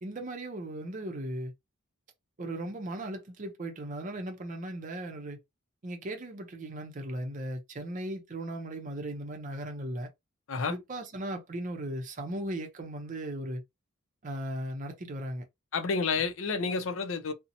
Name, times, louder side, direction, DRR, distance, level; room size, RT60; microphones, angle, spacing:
voice 1, 0.0-1.5 2.4-5.4 5.8-10.1 10.7-13.6 14.2-15.5, right 1 dB, 40° right, 0.5 m, -37 dB
voice 2, 15.7-17.3, left 4 dB, 65° left, 0.5 m, -30 dB
2.7 x 2.0 x 2.6 m
head